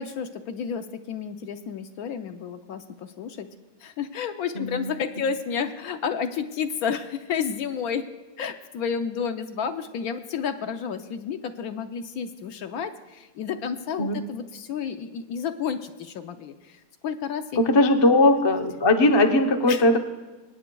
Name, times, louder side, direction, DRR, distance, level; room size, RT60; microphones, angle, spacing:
voice 1, 0.0-3.5 3.8-8.1 8.4-17.7 18.0-18.2 19.7-19.8, left 7 dB, 70° left, 8 dB, 1.0 m, -31 dB
voice 2, 17.6-20.0, left 2 dB, 30° left, 4 dB, 0.5 m, -19 dB
25.5 x 9.1 x 2.3 m, 1.2 s
omnidirectional pair, 1.7 m